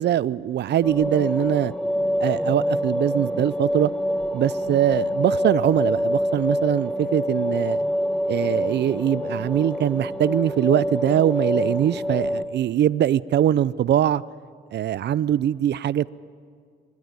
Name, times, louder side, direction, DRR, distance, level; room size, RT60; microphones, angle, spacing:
voice 1, 0.0-1.7 2.2-3.9 4.3-7.8 8.3-14.2 14.7-16.1, right 11 dB, 60° right, 20 dB, 0.5 m, -22 dB
sound 1, 0.8-12.4, equal, 5° left, 1.5 m, -26 dB
25.5 x 14.5 x 9.7 m, 2.1 s
cardioid pair, 90°, 20 cm